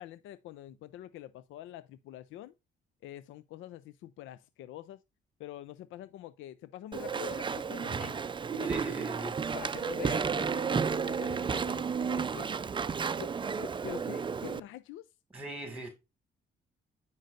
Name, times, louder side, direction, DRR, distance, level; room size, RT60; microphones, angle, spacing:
voice 1, 0.0-2.5 3.0-5.0 5.4-8.1 8.5-8.9 9.5-12.5 13.2-13.3 13.6-15.1, left 13 dB, 85° left, 0.4 m, -45 dB
Walk footsteps / Chatter / Squeak, 6.9-14.6, right 6 dB, 25° right, 0.4 m, -32 dB
voice 2, 7.8-8.2 8.6-9.4 15.3-15.9, right 2 dB, 5° right, 1.9 m, -40 dB
9.1 x 5.3 x 2.5 m
cardioid pair, 90°, 20 cm